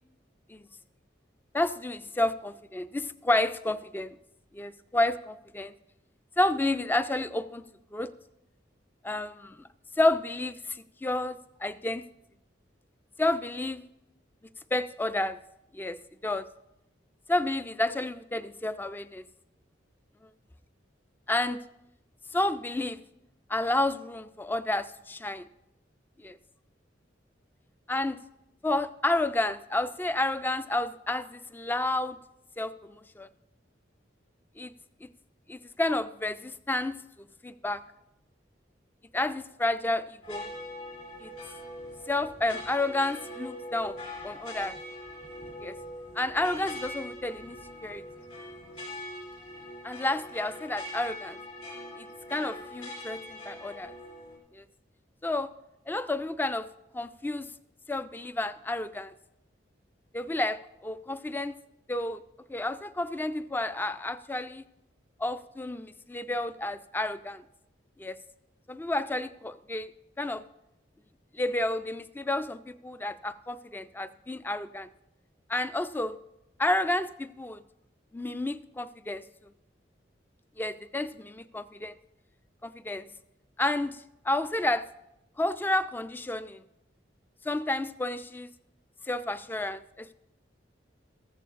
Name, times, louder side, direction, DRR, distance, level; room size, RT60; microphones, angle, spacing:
voice 1, 1.5-4.2 4.5-5.7 6.4-7.6 7.9-8.1 9.0-9.6 10.0-12.0 13.2-13.8 14.7-15.4 15.7-16.5 17.3-19.2 21.3-21.6 22.3-23.0 23.5-25.5 26.2-26.4 27.9-28.2 28.6-32.2 32.6-33.3 34.6-34.7 35.0-35.1 35.5-37.0 37.4-37.8 39.1-40.5 41.2-41.3 42.1-44.0 44.2-44.8 45.6-45.8 46.2-47.6 47.8-48.0 49.8-51.4 52.3-53.9 54.5-54.6 55.2-55.5 55.9-56.7 56.9-57.5 57.9-59.1 60.1-61.6 61.9-62.2 62.5-64.6 65.2-67.4 68.0-68.2 68.7-69.9 70.2-70.4 71.3-74.9 75.5-76.2 76.6-77.6 78.1-79.2 80.6-82.0 82.6-83.1 83.6-84.9 85.4-86.6 87.4-88.5 89.1-90.1, left 2 dB, 10° left, 13 dB, 0.3 m, -30 dB
sound 1, 40.2-54.4, left 1 dB, 40° left, 3.2 m, -42 dB
14.5 x 14.0 x 2.5 m, 0.89 s
head